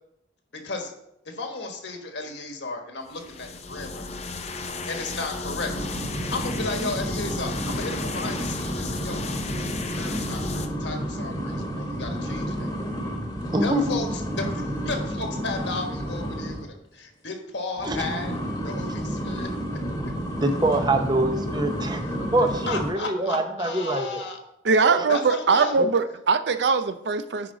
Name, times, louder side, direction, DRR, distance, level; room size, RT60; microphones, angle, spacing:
voice 1, 1.2-4.1 4.9-5.7 6.3-9.3 9.9-12.7 13.6-16.7 16.9-18.3 18.6-19.5 22.6-24.4 25.1-25.8, left 3 dB, 75° left, 4 dB, 1.4 m, -33 dB
sound 1, 3.1-10.7, left 3 dB, 35° left, 0.6 m, -34 dB
sound 2, 5.6-16.7 17.8-22.9, equal, 20° left, 1.2 m, -31 dB
voice 2, 13.5-14.0 17.8-18.0 20.4-22.0 22.3-24.2 24.8-25.0 25.8-25.9, right 1 dB, 25° right, 6 dB, 0.7 m, -24 dB
voice 3, 24.6-27.5, right 4 dB, 70° right, 11 dB, 0.5 m, -21 dB
10.0 x 4.8 x 3.8 m, 0.81 s
head